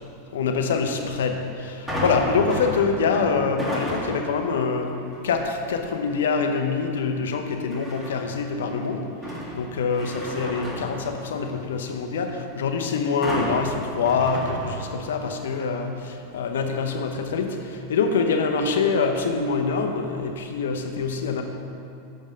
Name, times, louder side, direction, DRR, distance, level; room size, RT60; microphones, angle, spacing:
voice 1, 0.3-21.4, left 5 dB, 85° left, 4 dB, 0.7 m, -25 dB
sound 1, 1.9-4.4 4.9-5.3 7.7-8.4 8.8-11.7 13.2-15.2 15.5-15.6, equal, 10° right, 1.7 m, -32 dB
6.8 x 5.4 x 5.1 m, 2.6 s
hypercardioid pair, 115°, 0 cm